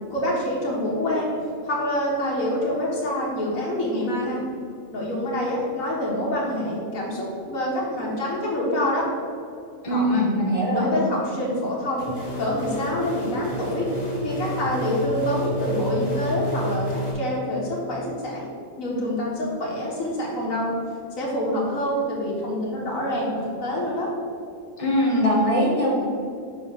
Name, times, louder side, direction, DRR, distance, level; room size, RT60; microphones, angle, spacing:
voice 1, 0.1-1.3 1.6-4.4 4.9-9.1 9.9-10.2 10.7-12.1 12.4-13.9 14.2-18.5 18.8-20.7 21.2-24.1, left 1 dB, 80° left, -5 dB, 1.7 m, -26 dB
voice 2, 9.8-10.9 24.8-25.9, equal, 25° left, -3 dB, 1.5 m, -21 dB
sound 1, 12.0-17.1, equal, 50° left, 1.7 m, -30 dB
5.4 x 4.4 x 6.3 m, 2.5 s
omnidirectional pair, 1.4 m